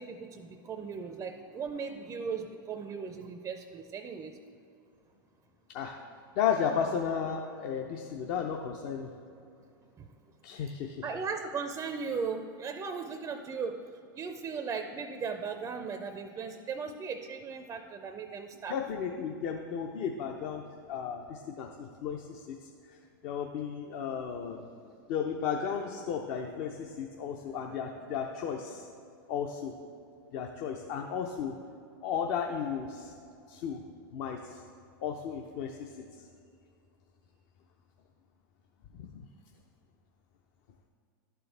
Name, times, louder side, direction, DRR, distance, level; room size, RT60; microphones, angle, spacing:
voice 1, 0.0-4.4 10.0-10.1 11.0-13.9 14.2-18.8, right 5 dB, 25° right, 6 dB, 0.4 m, -37 dB
voice 2, 6.4-9.1 10.4-11.0 18.7-24.7 25.1-28.8 29.3-29.7 30.3-31.6 32.0-33.1 33.5-33.8 34.1-34.6 35.0-36.3 38.9-39.2, left 7 dB, 50° left, 2 dB, 0.6 m, -34 dB
11.5 x 4.5 x 3.3 m, 2.5 s
hypercardioid pair, 110°, 12 cm